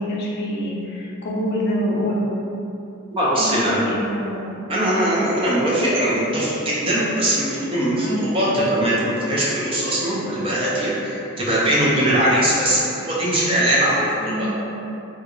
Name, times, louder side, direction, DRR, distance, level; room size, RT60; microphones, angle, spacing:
voice 1, 0.0-2.3 3.3-4.5 7.9-8.3 14.2-14.5, equal, 55° left, -4 dB, 0.5 m, -25 dB
voice 2, 3.1-3.8 4.7-14.5, right 1 dB, 25° right, -7 dB, 0.7 m, -21 dB
3.5 x 2.5 x 2.9 m, 2.8 s
head